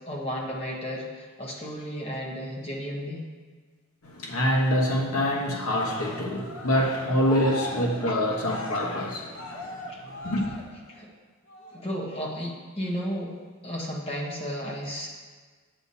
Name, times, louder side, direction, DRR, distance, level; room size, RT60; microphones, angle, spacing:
voice 1, 0.0-3.3 9.9-10.0 10.9-11.1 11.7-13.3 13.6-15.1, equal, 25° left, -2 dB, 1.3 m, -33 dB
voice 2, 4.0-9.8 10.1-10.6, equal, 85° left, 0 dB, 1.2 m, -26 dB
Cheering, 5.8-11.0 11.5-11.9, left 2 dB, 65° left, 1.2 m, -39 dB
8.2 x 7.9 x 2.8 m, 1.4 s
head